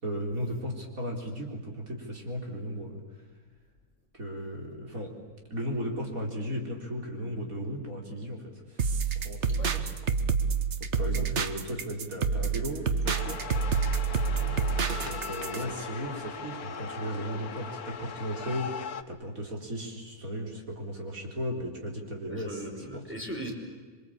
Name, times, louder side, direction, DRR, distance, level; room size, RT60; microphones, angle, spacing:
voice 1, 0.0-3.0 4.1-5.1 5.5-8.8 9.1-9.9 11.0-13.5 14.9-23.0, equal, 70° right, 1 dB, 4.5 m, -36 dB
sound 1, 8.8-15.6, right 5 dB, 50° right, 1.4 m, -28 dB
sound 2, 13.0-19.0, left 6 dB, 80° left, 1.6 m, -39 dB
Bowed string instrument, 13.7-18.6, left 1 dB, 85° right, 6.4 m, -50 dB
voice 2, 14.3-14.6 22.3-23.5, right 1 dB, 10° right, 0 dB, 5.2 m, -39 dB
27.5 x 24.0 x 8.7 m, 1.5 s
omnidirectional pair, 1.5 m